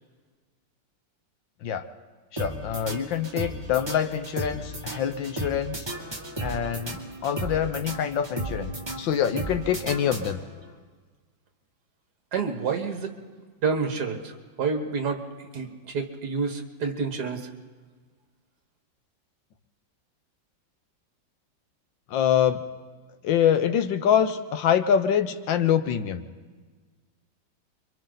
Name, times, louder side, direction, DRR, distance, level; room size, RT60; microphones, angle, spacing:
voice 1, 2.3-5.9 6.4-10.4 22.1-22.6 23.2-26.3, left 9 dB, 75° left, 9 dB, 1.6 m, -25 dB
sound 1, 2.4-10.7, right 2 dB, 15° right, 1.7 m, -35 dB
voice 2, 12.3-13.1 13.6-15.2 15.5-17.5, right 5 dB, 60° right, 6 dB, 1.9 m, -28 dB
29.5 x 24.0 x 4.0 m, 1.5 s
omnidirectional pair, 2.1 m